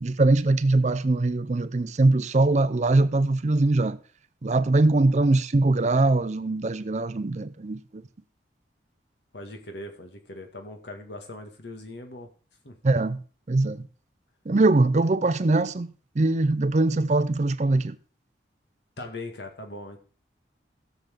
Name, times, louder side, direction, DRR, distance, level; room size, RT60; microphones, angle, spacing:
voice 1, 0.0-4.0 4.4-8.0 12.8-13.2 13.5-13.9 14.5-15.9 16.2-18.0, right 2 dB, 40° right, 0.5 m, -22 dB
voice 2, 9.3-12.3 12.6-13.0 13.6-13.7 19.0-20.0, left 2 dB, 65° left, 1.9 m, -40 dB
16.0 x 7.1 x 3.6 m
head